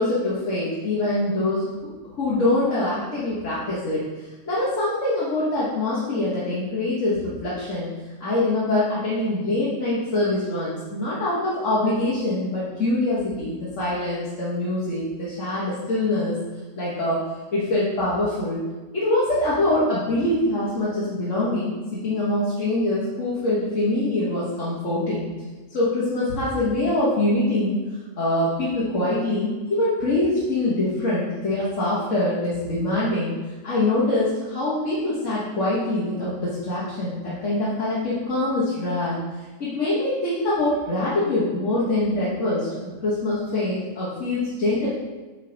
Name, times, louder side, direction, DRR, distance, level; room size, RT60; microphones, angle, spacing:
voice 1, 0.0-1.7 2.2-7.9 8.2-16.3 16.7-17.2 17.5-18.6 18.9-25.3 25.7-27.8 28.2-33.3 33.6-39.1 39.6-44.9, left 2 dB, 65° left, -8 dB, 1.7 m, -24 dB
8.8 x 3.4 x 3.9 m, 1.3 s
omnidirectional pair, 1.4 m